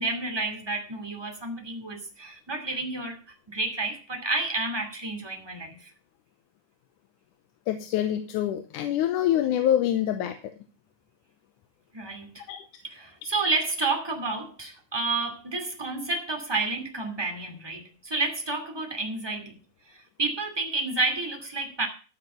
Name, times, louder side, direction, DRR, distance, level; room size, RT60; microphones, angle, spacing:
voice 1, 0.0-3.2 3.5-5.9 11.9-12.4 12.9-19.6 19.9-21.9, right 3 dB, 10° right, 3 dB, 2.1 m, -30 dB
voice 2, 7.7-10.4 12.5-12.6, left 11 dB, 80° left, 7 dB, 2.4 m, -25 dB
14.5 x 6.1 x 6.7 m, 0.36 s
omnidirectional pair, 3.6 m